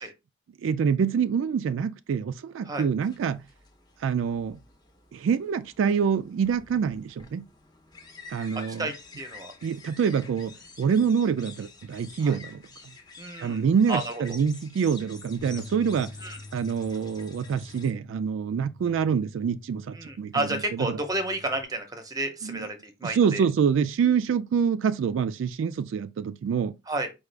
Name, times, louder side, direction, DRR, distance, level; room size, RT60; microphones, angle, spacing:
voice 1, 0.6-3.4 4.0-4.6 5.1-7.4 8.3-8.9 9.6-12.6 13.4-16.1 16.5-20.4 20.7-21.0 22.4-22.6 23.0-26.7, right 6 dB, 80° right, 0.3 m, -26 dB
sound 1, 3.0-17.9, left 4 dB, 20° left, 0.7 m, -49 dB
voice 2, 8.8-9.5 12.2-12.4 13.2-13.6 13.9-14.4 16.2-16.4 19.9-23.4 26.9-27.1, right 2 dB, 20° right, 0.7 m, -31 dB
Bass guitar, 15.4-21.6, left 2 dB, 90° left, 0.6 m, -47 dB
4.8 x 2.3 x 3.3 m
head